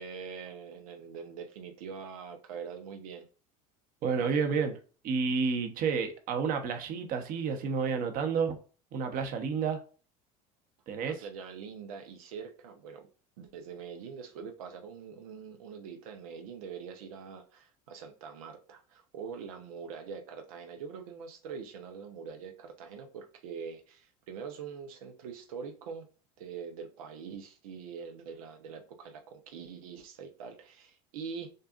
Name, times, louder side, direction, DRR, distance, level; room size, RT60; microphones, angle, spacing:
voice 1, 0.0-3.3 11.0-13.1 13.4-26.1 26.4-31.5, right 6 dB, 90° right, 0.8 m, -44 dB
voice 2, 4.0-4.8 5.0-8.6 8.9-9.8 10.9-11.2, right 5 dB, 55° right, 1.1 m, -30 dB
6.5 x 2.5 x 2.5 m
supercardioid pair, 110°, 18 cm